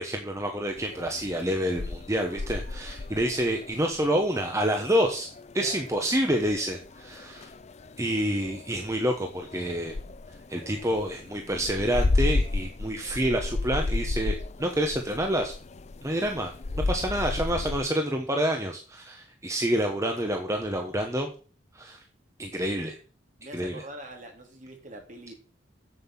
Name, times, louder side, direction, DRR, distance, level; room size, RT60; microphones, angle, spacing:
voice 1, 0.0-5.3 5.5-7.5 8.0-9.9 10.5-15.5 16.0-16.5 16.9-21.3 21.7-22.0 22.4-22.9 23.5-23.8, equal, 15° right, 3 dB, 1.2 m, -28 dB
sound 1, 0.8-17.8, left 2 dB, 35° left, 0.5 m, -33 dB
voice 2, 23.4-25.3, right 1 dB, 45° right, 2 dB, 3.1 m, -44 dB
7.9 x 7.8 x 7.4 m, 0.39 s
head